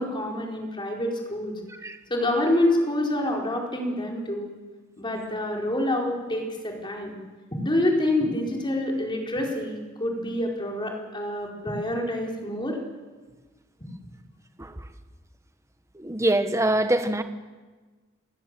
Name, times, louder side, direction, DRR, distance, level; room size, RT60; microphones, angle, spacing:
voice 1, 0.0-1.5 2.1-4.5 5.0-7.1 7.5-12.8, left 1 dB, 25° left, 0 dB, 4.7 m, -27 dB
voice 2, 15.9-17.2, right 1 dB, 15° right, 8 dB, 1.3 m, -24 dB
30.0 x 16.5 x 7.6 m, 1.3 s
head